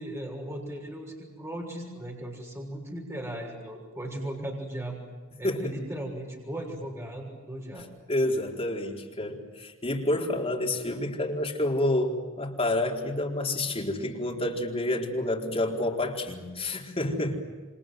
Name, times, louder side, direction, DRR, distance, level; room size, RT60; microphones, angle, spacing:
voice 1, 0.0-5.0 5.4-7.9, right 1 dB, 15° right, 0 dB, 6.5 m, -37 dB
voice 2, 5.4-5.8 8.1-17.4, left 1 dB, 30° left, 0 dB, 4.3 m, -29 dB
28.0 x 26.5 x 7.9 m, 1.4 s
head